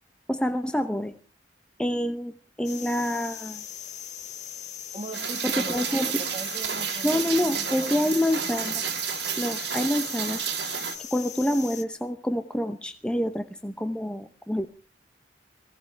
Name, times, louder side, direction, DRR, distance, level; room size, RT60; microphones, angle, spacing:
voice 1, 0.3-1.1 1.8-2.3 2.6-3.6 5.4-6.2 7.0-8.8 9.4-10.4 11.1-14.7, left 1 dB, 5° left, 7 dB, 0.8 m, -27 dB
sound 1, 2.6-11.8, left 9 dB, 45° left, 0.9 m, -40 dB
voice 2, 4.9-8.5, right 2 dB, 30° right, 2 dB, 1.6 m, -41 dB
Rain, 5.1-11.0, right 8 dB, 80° right, 2.5 m, -31 dB
20.0 x 17.0 x 3.4 m, 0.37 s
head